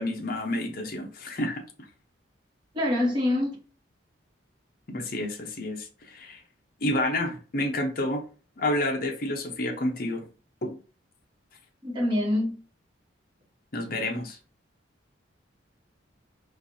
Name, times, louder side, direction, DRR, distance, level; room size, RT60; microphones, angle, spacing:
voice 1, 0.0-1.6 4.9-6.4 6.8-8.2 8.6-10.3 10.6-10.8 13.7-14.4, left 1 dB, 45° left, 0.7 m, -29 dB
voice 2, 2.7-3.6 11.8-12.5, left 1 dB, 25° right, 1.1 m, -25 dB
4.4 x 2.4 x 2.7 m
head